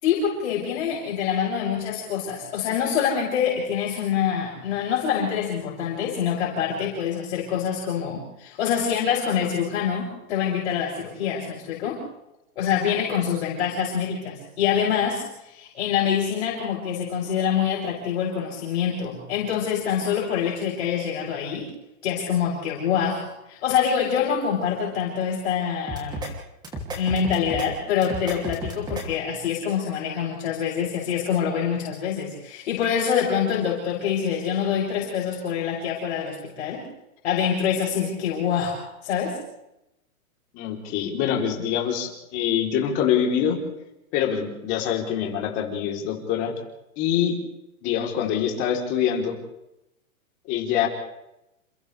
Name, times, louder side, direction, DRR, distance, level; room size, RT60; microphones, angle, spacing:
voice 1, 0.0-12.0 12.6-21.7 22.0-26.2 27.0-36.9 37.2-39.4, left 8 dB, 50° left, -5 dB, 7.1 m, -25 dB
sound 1, 25.9-26.3 26.6-27.7 28.0-29.0, equal, 10° right, 2.8 m, -32 dB
voice 2, 40.5-43.6 44.1-46.5 47.0-47.4 47.8-49.4 50.5-50.9, left 9 dB, 25° left, 0 dB, 3.6 m, -25 dB
29.0 x 29.0 x 3.4 m, 0.89 s
hypercardioid pair, 165°, 43 cm